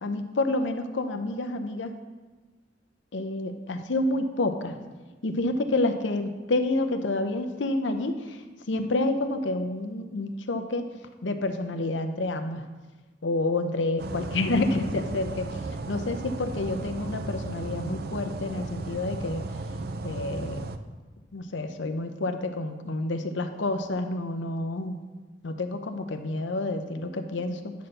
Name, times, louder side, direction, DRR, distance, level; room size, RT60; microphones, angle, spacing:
voice 1, 0.0-1.9 3.1-4.8 5.2-8.2 8.7-10.8 11.2-12.6 13.2-15.5 15.9-19.4 20.0-20.6 21.3-25.0 25.4-27.7, left 2 dB, 90° left, 7 dB, 0.7 m, -28 dB
sound 1, 14.0-20.8, right 2 dB, 55° right, 0.5 m, -35 dB
9.2 x 4.3 x 6.5 m, 1.3 s
head